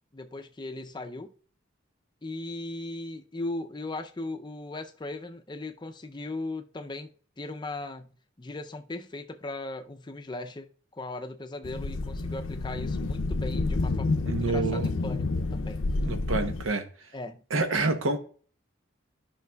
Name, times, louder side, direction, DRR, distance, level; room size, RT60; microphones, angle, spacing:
voice 1, 0.1-1.3 2.2-7.1 7.4-15.8 17.1-17.4, left 2 dB, 20° left, 0.5 m, -38 dB
sound 1, 11.6-16.6, left 3 dB, 80° left, 0.5 m, -29 dB
voice 2, 14.3-14.9 16.1-16.8 17.5-18.2, right 3 dB, 85° right, 0.8 m, -27 dB
12.0 x 5.8 x 2.3 m
head